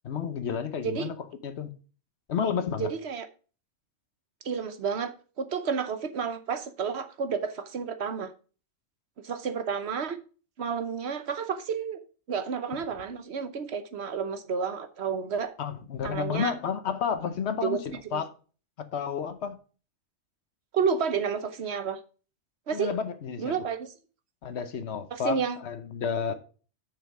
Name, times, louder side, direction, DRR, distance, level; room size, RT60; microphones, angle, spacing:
voice 1, 0.0-1.1 1.4-1.7 2.3-2.9 15.6-18.3 18.8-19.6 22.7-23.5 24.4-26.3, left 7 dB, 70° left, 1.2 m, -31 dB
voice 2, 2.8-3.3 4.4-8.3 9.2-10.2 10.6-12.0 12.3-15.5 16.0-16.5 17.6-17.8 18.1-18.2 20.7-22.0 22.7-22.9 23.4-23.9 25.1-25.6, right 6 dB, 65° right, 1.1 m, -30 dB
6.7 x 6.5 x 4.8 m
omnidirectional pair, 1.2 m